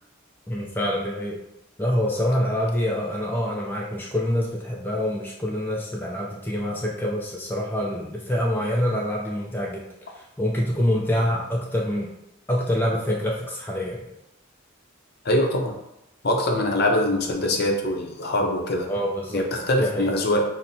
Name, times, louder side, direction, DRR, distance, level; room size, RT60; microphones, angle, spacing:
voice 1, 0.5-1.4 1.8-12.1 12.5-14.1 18.9-19.4 19.8-20.1, left 1 dB, 10° left, -3 dB, 0.4 m, -26 dB
voice 2, 15.2-15.7 16.2-18.9 19.3-20.4, left 1 dB, 55° left, 2 dB, 0.6 m, -23 dB
5.7 x 2.1 x 2.6 m, 0.84 s
head